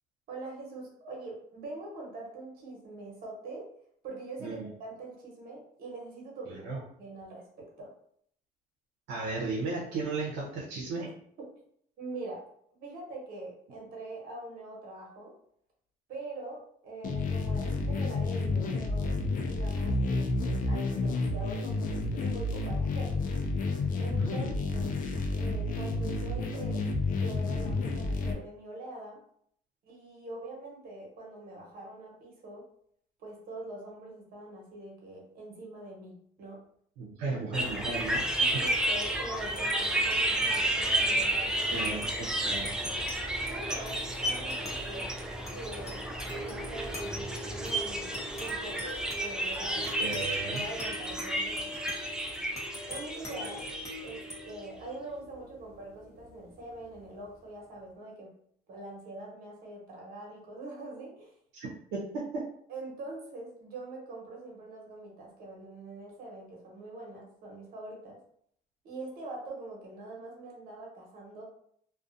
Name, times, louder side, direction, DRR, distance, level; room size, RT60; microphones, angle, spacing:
voice 1, 0.3-3.7 4.0-6.6 7.0-7.9 11.0-11.1 12.0-12.4 12.8-15.3 16.1-23.2 24.0-25.0 25.3-29.2 29.8-32.6 33.2-36.6 38.4-41.9 43.5-45.1 45.5-46.0 46.3-49.9 50.5-51.7 52.8-53.6 54.0-58.3 58.7-61.3 62.7-68.2 68.8-71.4, right 2 dB, 60° right, -2 dB, 1.1 m, -43 dB
voice 2, 6.5-6.8 9.1-11.0 24.2-24.5 37.0-38.2 38.5-38.6 41.6-42.7 49.8-50.6 61.5-62.5, right 3 dB, 85° right, -5 dB, 0.7 m, -35 dB
sound 1, 17.0-28.3, left 3 dB, 50° left, 0.5 m, -30 dB
sound 2, 37.5-54.5, right 1 dB, 5° right, 0.3 m, -32 dB
sound 3, 38.4-57.3, left 1 dB, 15° left, 1.0 m, -44 dB
2.4 x 2.3 x 2.5 m, 0.66 s
cardioid pair, 110°, 17 cm